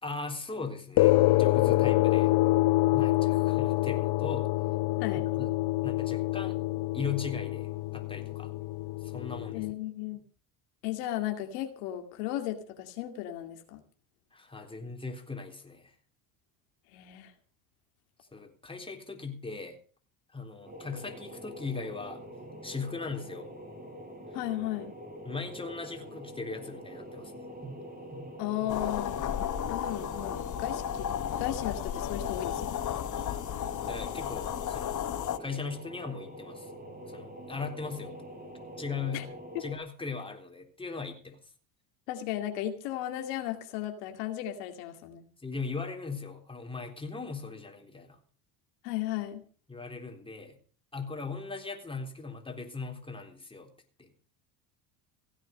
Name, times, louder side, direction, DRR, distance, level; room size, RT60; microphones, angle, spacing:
voice 1, 0.0-2.3 2.9-4.5 5.3-5.6 5.8-6.6 6.9-8.5 9.0-9.7 14.3-16.0 18.3-19.8 20.3-22.2 22.6-23.5 25.2-27.5 33.2-35.0 35.4-36.7 37.1-38.2 38.8-39.3 39.6-41.5 45.4-48.2 49.7-50.6 50.9-53.7 54.0-54.1, left 4 dB, 10° left, 3 dB, 3.8 m, -39 dB
sound 1, 1.0-9.7, left 18 dB, 55° left, 0.8 m, -26 dB
voice 2, 9.5-10.2 10.8-13.8 16.9-17.3 24.3-24.9 28.4-29.2 29.7-31.1 31.4-32.8 39.1-39.2 39.5-39.6 42.1-45.3 48.8-49.4, left 13 dB, 80° left, 5 dB, 2.4 m, -35 dB
sound 2, 20.6-39.8, equal, 20° right, 6.1 m, -45 dB
sound 3, 28.7-35.4, left 10 dB, 40° left, 1.2 m, -34 dB
16.5 x 9.0 x 6.5 m, 0.41 s
supercardioid pair, 90°, 46 cm